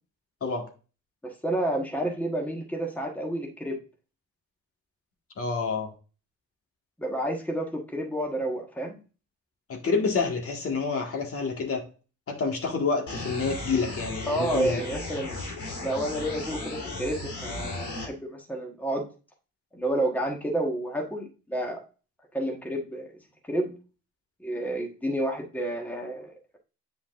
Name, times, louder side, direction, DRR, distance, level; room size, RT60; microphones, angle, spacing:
voice 1, 1.2-3.8 7.0-9.0 14.3-15.4 15.8-19.1 19.7-21.8 22.3-23.1 23.5-23.7 24.4-26.6, right 1 dB, 5° left, 1.4 m, -30 dB
voice 2, 5.4-5.9 9.7-11.9 12.3-14.8, left 4 dB, 50° left, 1.8 m, -28 dB
sound 1, 13.1-18.1, left 2 dB, 75° left, 3.3 m, -35 dB
8.1 x 5.1 x 2.5 m
cardioid pair, 90°, 30 cm